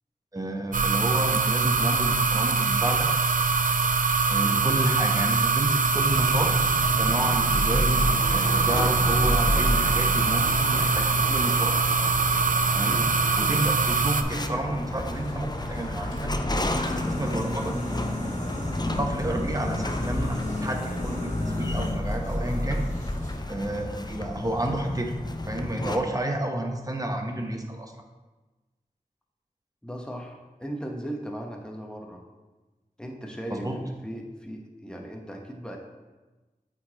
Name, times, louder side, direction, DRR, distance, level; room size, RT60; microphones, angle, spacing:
voice 1, 0.3-3.1 4.3-8.0 8.3-11.7 12.7-13.0 13.4-16.3 17.1-17.7 19.0-22.9 23.5-25.1 25.5-27.9 33.5-33.8, right 1 dB, 25° right, 2 dB, 0.9 m, -30 dB
sound 1, 0.7-14.2, right 4 dB, 65° right, 0.5 m, -23 dB
sound 2, 6.0-11.5 13.0-23.4, equal, 55° left, 1.9 m, -31 dB
sound 3, 8.0-26.0, left 2 dB, 30° left, 0.5 m, -34 dB
voice 2, 29.8-32.2 33.0-35.8, equal, 5° left, 0 dB, 1.0 m, -37 dB
8.1 x 4.8 x 2.9 m, 1.2 s
wide cardioid pair, 45°, 15 cm